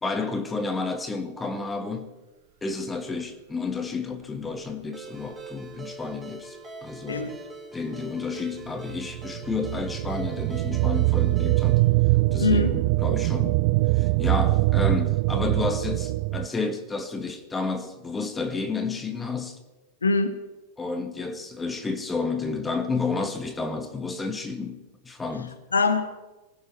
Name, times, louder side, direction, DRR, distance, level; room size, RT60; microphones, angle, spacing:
voice 1, 0.0-2.1 2.6-7.3 7.7-11.8 12.3-13.6 13.9-19.6 20.8-25.6, left 4 dB, 15° left, 1.4 m, -31 dB
Ringtone, 4.9-11.8, right 3 dB, 10° right, 5.6 m, -42 dB
voice 2, 7.1-7.4 12.4-12.7 20.0-20.3 25.7-26.1, left 3 dB, 75° left, 1.3 m, -22 dB
sound 1, 8.7-16.5, right 20 dB, 50° right, 0.4 m, -23 dB
24.0 x 16.0 x 3.2 m
figure-of-eight pair, 90°, 0 cm